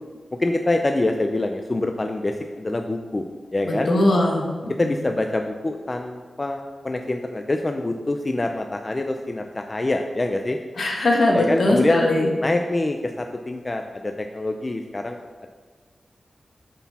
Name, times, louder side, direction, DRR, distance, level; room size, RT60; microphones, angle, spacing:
voice 1, 0.4-3.3 3.5-3.9 4.7-10.6 11.3-12.0 12.4-15.5, left 2 dB, 25° left, 4 dB, 0.3 m, -25 dB
voice 2, 3.6-4.4 4.8-4.9 10.8-12.3, left 1 dB, 60° left, -1 dB, 1.3 m, -20 dB
9.9 x 4.1 x 4.0 m, 1.5 s
wide cardioid pair, 170°, 0 cm